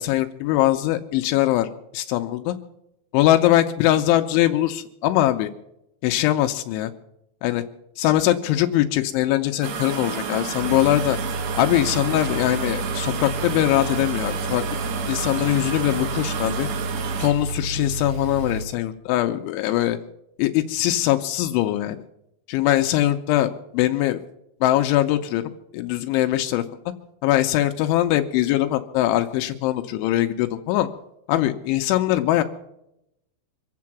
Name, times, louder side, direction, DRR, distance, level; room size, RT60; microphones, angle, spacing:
voice 1, 0.0-1.7 1.9-2.6 3.1-5.5 6.0-6.9 7.4-7.6 8.0-11.2 11.5-14.6 15.1-16.7 17.2-20.0 20.4-22.0 22.5-24.2 24.6-25.4 25.7-26.6 27.2-30.9 31.3-32.4, left 14 dB, 85° left, 6 dB, 3.1 m, -21 dB
sound 1, 9.6-17.3, right 7 dB, 70° right, 3.4 m, -30 dB
sound 2, 10.6-18.6, right 2 dB, 50° right, 2.5 m, -31 dB
25.0 x 8.5 x 6.0 m, 0.82 s
omnidirectional pair, 5.4 m